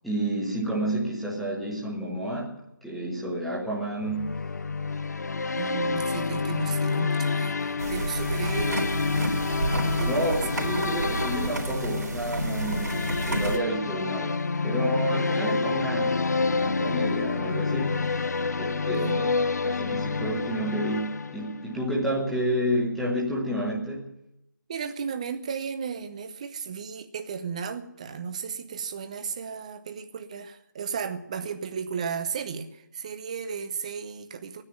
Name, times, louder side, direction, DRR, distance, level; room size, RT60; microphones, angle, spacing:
voice 1, 0.0-4.4 10.1-18.2 18.6-24.1, right 1 dB, ahead, -8 dB, 1.5 m, -30 dB
sound 1, 4.0-21.7, left 4 dB, 55° left, 0.5 m, -28 dB
voice 2, 5.6-10.4 18.9-19.2 24.7-34.6, right 6 dB, 20° right, 9 dB, 0.8 m, -35 dB
sound 2, 7.8-13.6, right 2 dB, 60° right, 3.3 m, -30 dB
15.5 x 9.8 x 9.5 m, 0.83 s
figure-of-eight pair, 165°, 10 cm